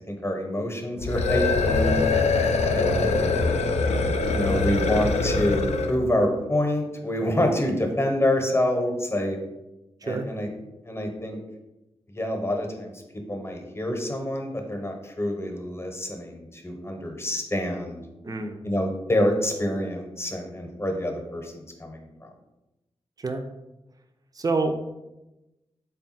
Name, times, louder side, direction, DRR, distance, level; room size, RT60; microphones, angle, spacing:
voice 1, 0.1-2.1 2.7-3.3 4.3-9.4 10.0-10.5 10.8-11.4 12.1-18.0 18.6-22.3, left 1 dB, 20° left, 3 dB, 0.8 m, -27 dB
sound 1, 1.0-6.0, left 3 dB, 75° left, 0.4 m, -23 dB
voice 2, 18.2-18.6 23.2-23.4 24.3-24.9, right 3 dB, 35° right, 5 dB, 0.4 m, -28 dB
3.5 x 2.3 x 4.0 m, 0.99 s
cardioid pair, 45°, 11 cm